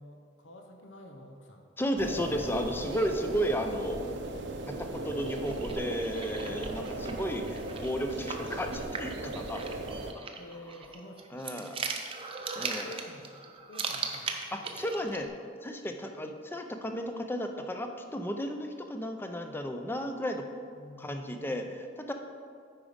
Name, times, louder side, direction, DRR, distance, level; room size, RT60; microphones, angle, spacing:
voice 1, 0.0-1.7 2.2-2.3 6.5-7.1 10.4-11.9 12.4-14.9 20.7-21.7, left 1 dB, 75° left, 3 dB, 0.9 m, -50 dB
voice 2, 1.8-4.0 4.7-9.6 9.9-10.3 11.3-11.8 12.5-12.9 14.5-15.3 15.6-20.4 21.0-22.1, equal, 10° left, 5 dB, 0.5 m, -34 dB
sound 1, 2.0-10.1, right 2 dB, 65° right, 0.7 m, -37 dB
sound 2, 5.2-15.3, right 4 dB, 30° right, 0.6 m, -39 dB
9.0 x 5.0 x 5.1 m, 2.2 s
head